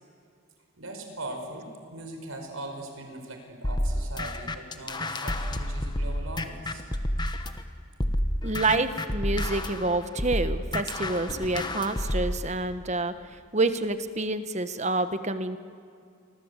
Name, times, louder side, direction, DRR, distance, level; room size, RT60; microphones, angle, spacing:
voice 1, 0.8-6.8, right 1 dB, 85° right, 4 dB, 5.1 m, -40 dB
sound 1, 3.6-7.6 8.0-12.4, left 1 dB, 20° left, 1.3 m, -30 dB
voice 2, 8.4-15.6, right 2 dB, 35° right, 11 dB, 1.2 m, -28 dB
29.5 x 24.0 x 8.2 m, 2.4 s
head